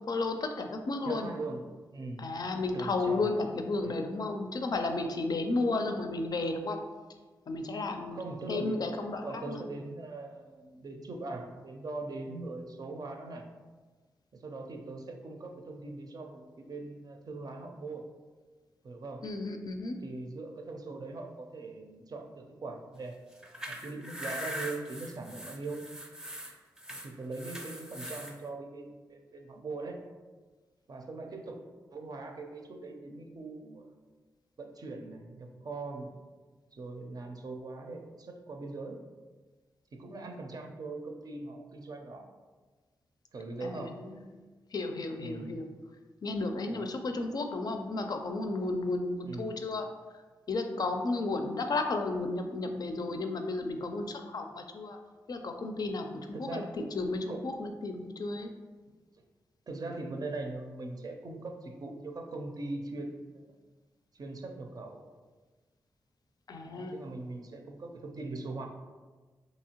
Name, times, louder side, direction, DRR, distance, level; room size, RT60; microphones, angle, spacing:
voice 1, 0.1-1.3 2.2-6.8 7.5-8.2 8.5-9.6 19.2-20.0 43.6-43.9 44.7-45.7 46.2-49.9 50.5-55.0 55.3-56.1 56.4-58.5 66.5-67.0, left 3 dB, 55° left, 5 dB, 0.4 m, -33 dB
voice 2, 1.0-1.6 1.9-2.2 2.7-3.3 3.8-4.0 5.6-5.9 8.1-8.8 9.2-13.4 14.3-18.0 18.8-19.2 20.0-23.2 23.7-25.8 26.9-30.0 30.9-31.6 31.9-34.0 34.6-36.1 36.7-39.0 39.9-42.2 43.3-43.9 45.2-45.6 46.5-47.0 49.2-49.5 56.3-56.7 57.1-57.5 59.7-63.6 64.1-65.0 66.7-68.7, right 3 dB, 50° right, 3 dB, 0.5 m, -41 dB
sound 1, 23.3-28.3, equal, 5° right, 0.5 m, -41 dB
2.9 x 2.7 x 2.8 m, 1.3 s
supercardioid pair, 45°, 8 cm